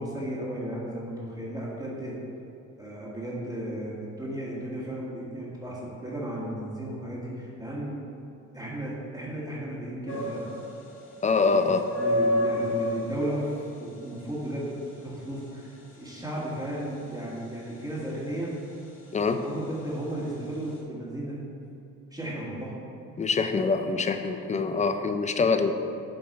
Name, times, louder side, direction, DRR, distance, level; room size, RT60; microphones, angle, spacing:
voice 1, 0.0-2.2 2.8-8.0 8.5-10.5 11.4-13.5 13.8-14.7 15.0-18.5 19.4-21.4 22.1-22.7, right 1 dB, 10° right, -6 dB, 1.3 m, -34 dB
sound 1, 10.1-20.8, left 1 dB, 40° left, 1.2 m, -33 dB
voice 2, 11.2-11.8 19.1-19.5 23.2-25.7, left 4 dB, 25° left, 8 dB, 0.4 m, -24 dB
7.7 x 3.9 x 4.1 m, 2.8 s
cardioid pair, 90°, 30 cm